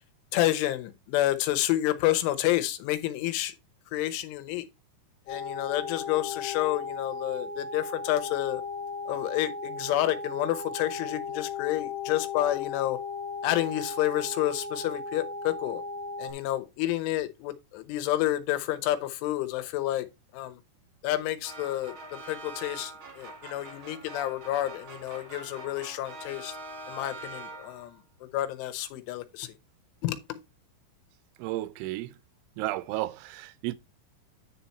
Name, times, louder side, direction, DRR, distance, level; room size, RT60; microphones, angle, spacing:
voice 1, 0.3-3.5 3.9-4.6 5.3-8.6 9.1-13.0 13.4-15.8 16.2-20.1 20.3-20.6 21.0-26.6 26.9-28.0 28.3-29.5 30.0-30.4, left 14 dB, 85° left, 3.4 m, -29 dB
sound 1, 5.3-16.3, left 4 dB, 50° left, 3.2 m, -36 dB
sound 2, 21.4-28.0, right 2 dB, 45° right, 1.7 m, -44 dB
voice 2, 31.4-32.2 32.6-33.8, right 16 dB, 85° right, 3.1 m, -33 dB
10.0 x 4.5 x 4.1 m
omnidirectional pair, 5.4 m